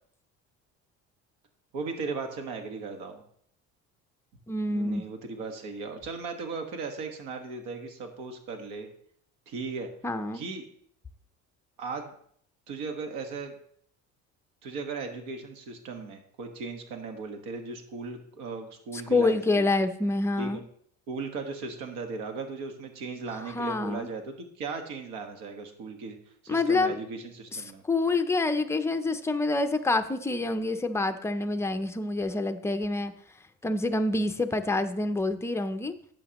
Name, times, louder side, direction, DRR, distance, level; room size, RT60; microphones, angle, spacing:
voice 1, 1.7-3.2 4.7-8.9 9.5-9.9 10.3-10.6 11.8-12.1 12.7-13.5 14.6-19.6 20.4-20.6 21.1-26.2 26.4-27.8, right 4 dB, 90° right, 4 dB, 1.6 m, -37 dB
voice 2, 4.5-5.0 10.0-10.4 19.1-20.6 23.5-24.1 26.5-27.0 27.5-33.1 33.6-35.9, left 2 dB, 10° left, 8 dB, 0.4 m, -27 dB
11.5 x 7.3 x 3.0 m, 0.64 s
cardioid pair, 150°, 31 cm